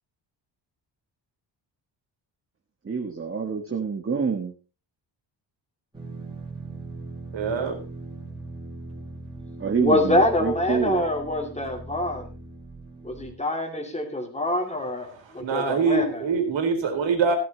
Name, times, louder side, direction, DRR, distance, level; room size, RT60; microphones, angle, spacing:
voice 1, 2.8-4.5 9.6-11.0, right 5 dB, 30° right, 3 dB, 1.6 m, -27 dB
sound 1, 5.9-13.3, right 2 dB, 10° right, 4.4 m, -40 dB
voice 2, 7.3-7.8 15.4-17.4, right 5 dB, 75° right, 4 dB, 4.0 m, -24 dB
voice 3, 9.8-12.3 13.0-16.3, left 1 dB, 15° left, 3 dB, 2.5 m, -25 dB
15.5 x 12.5 x 2.9 m, 0.31 s
wide cardioid pair, 150°, 45 cm